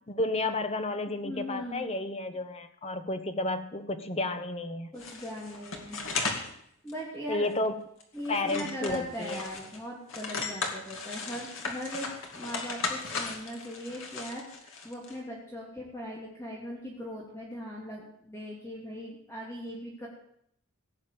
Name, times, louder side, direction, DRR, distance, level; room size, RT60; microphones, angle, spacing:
voice 1, 0.1-4.9 7.3-7.7 8.3-9.4, left 2 dB, 30° left, 8 dB, 1.0 m, -31 dB
voice 2, 1.2-1.9 4.9-6.0 6.8-7.5 8.1-20.1, equal, 10° left, -4 dB, 3.0 m, -39 dB
sound 1, 5.0-6.5 6.9-7.0 7.5-7.7 8.0-9.8 10.1-15.2, left 4 dB, 65° left, 2.4 m, -36 dB
17.0 x 7.1 x 8.4 m, 0.72 s
head